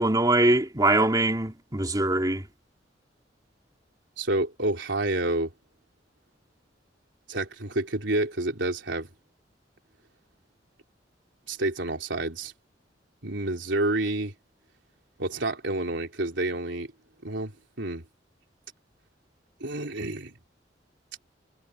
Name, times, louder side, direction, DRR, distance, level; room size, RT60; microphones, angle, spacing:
voice 1, 0.0-2.4, right 2 dB, 20° right, 3.4 m, -22 dB
voice 2, 4.2-5.5 7.3-9.1 11.5-12.5 13.2-14.3 15.2-16.9 17.2-17.5 17.8-18.0 19.6-20.4, right 2 dB, 75° right, 3.6 m, -29 dB
head